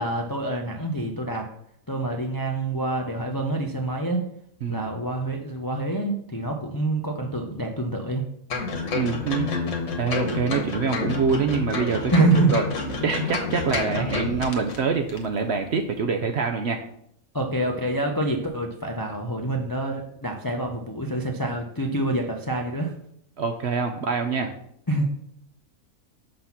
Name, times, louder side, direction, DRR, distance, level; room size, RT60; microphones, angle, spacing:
voice 1, 0.0-1.5 1.9-4.2 4.7-8.2 12.1-12.5 17.3-22.9 24.9-25.1, right 2 dB, 35° left, 1 dB, 0.3 m, -26 dB
sound 1, 8.5-14.8 15.1-15.2, left 4 dB, 55° left, 1.3 m, -28 dB
voice 2, 8.9-9.5 10.0-12.7 13.0-16.8 23.4-24.5, right 5 dB, 60° right, 4 dB, 0.7 m, -25 dB
6.4 x 4.1 x 5.8 m, 0.71 s
omnidirectional pair, 1.6 m